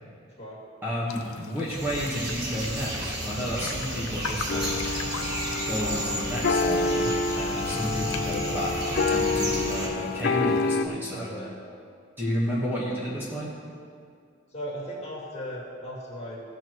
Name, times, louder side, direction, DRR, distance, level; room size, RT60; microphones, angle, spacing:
voice 1, 0.8-4.8 5.7-11.3 12.2-13.5, equal, 10° right, -7 dB, 1.4 m, -31 dB
sound 1, 1.1-10.8, left 4 dB, 85° left, 0.7 m, -40 dB
sound 2, 1.7-9.9, right 1 dB, 50° right, 1.6 m, -33 dB
sound 3, 4.5-10.8, left 3 dB, 50° left, 0.4 m, -28 dB
voice 2, 11.1-11.5 14.5-16.4, equal, 30° left, -6 dB, 2.4 m, -37 dB
16.0 x 6.8 x 3.1 m, 2.3 s
head